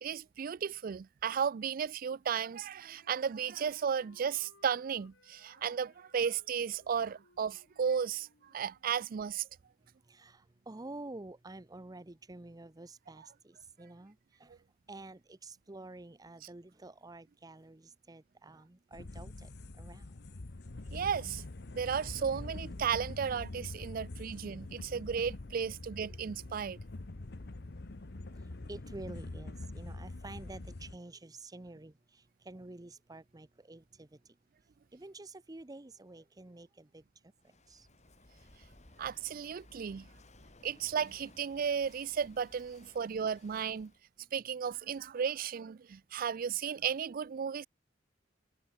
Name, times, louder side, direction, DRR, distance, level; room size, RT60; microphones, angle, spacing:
voice 1, 0.0-9.5 20.9-21.4 21.7-26.8 39.0-40.1 40.6-43.9 44.3-47.7, right 7 dB, 50° right, 0.4 m, -34 dB
Wind instrument woodwind instrument, 2.5-9.3, left 2 dB, 80° left, 3.4 m, -66 dB
voice 2, 9.8-14.6 14.9-20.2 28.4-34.4 34.9-37.9, right 2 dB, 20° right, 0.7 m, -49 dB
sound 1, 18.9-31.0, left 2 dB, 60° left, 1.0 m, -45 dB
Walk footsteps / Wind / Waves surf, 37.4-44.0, left 2 dB, 40° left, 4.1 m, -59 dB
head